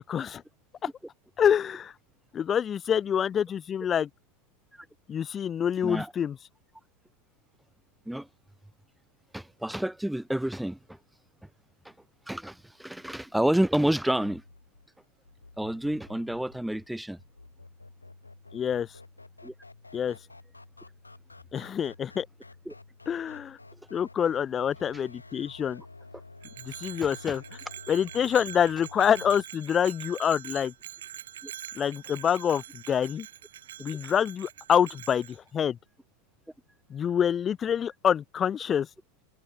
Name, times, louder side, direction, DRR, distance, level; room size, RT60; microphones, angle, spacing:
voice 1, 0.1-0.4 1.4-1.9 2.3-4.1 5.1-6.4 18.5-18.9 19.9-20.2 21.5-22.3 23.1-23.6 23.9-25.8 26.6-27.4 27.9-30.7 31.7-33.3 33.8-35.8 36.9-38.9, left 8 dB, 25° left, 1.6 m, -26 dB
voice 2, 9.3-11.0 11.8-11.9 12.3-14.4 15.6-17.2 19.4-19.5 22.7-22.8 27.0-27.3 31.4-31.5, right 1 dB, ahead, 1.4 m, -29 dB
sound 1, 14.1-29.5, left 3 dB, 80° left, 5.9 m, -50 dB
Bell, 26.4-35.4, right 11 dB, 60° right, 2.7 m, -44 dB
figure-of-eight pair, 90°, 0 cm